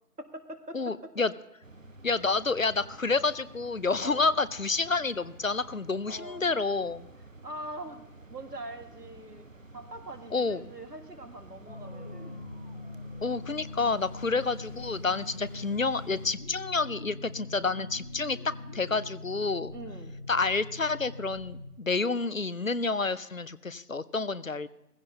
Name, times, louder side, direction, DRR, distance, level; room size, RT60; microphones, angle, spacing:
voice 1, 0.2-1.1 4.0-4.3 6.1-6.5 7.4-8.0 8.3-9.5 9.7-12.4 19.7-20.1, right 1 dB, 85° right, 7 dB, 1.8 m, -43 dB
voice 2, 0.7-1.3 2.0-7.1 10.3-10.7 13.2-19.7 20.3-24.7, left 4 dB, 60° left, 18 dB, 0.6 m, -29 dB
sound 1, 1.6-16.3, right 2 dB, 55° right, 1.0 m, -51 dB
sound 2, 11.7-21.7, left 2 dB, 35° left, 1.0 m, -42 dB
18.0 x 15.5 x 2.8 m, 0.87 s
figure-of-eight pair, 175°, 46 cm